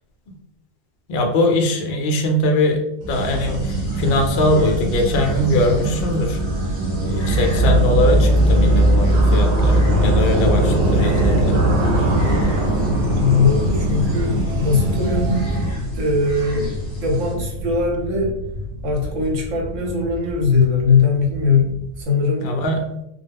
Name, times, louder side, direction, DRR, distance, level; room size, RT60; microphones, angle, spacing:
voice 1, 1.1-6.4 7.0-11.6 14.8-15.0 22.4-22.9, left 1 dB, 65° left, 3 dB, 0.6 m, -21 dB
sound 1, 3.0-15.7, right 2 dB, 90° right, 0.4 m, -25 dB
sound 2, 3.1-17.3, equal, 35° left, 1.0 m, -39 dB
sound 3, 7.1-22.0, right 1 dB, 55° right, 0.7 m, -21 dB
voice 2, 13.1-15.4 15.9-18.3 18.8-21.7 22.0-22.5, left 4 dB, 70° right, -1 dB, 1.1 m, -20 dB
2.3 x 2.0 x 3.3 m, 0.83 s
omnidirectional pair, 1.4 m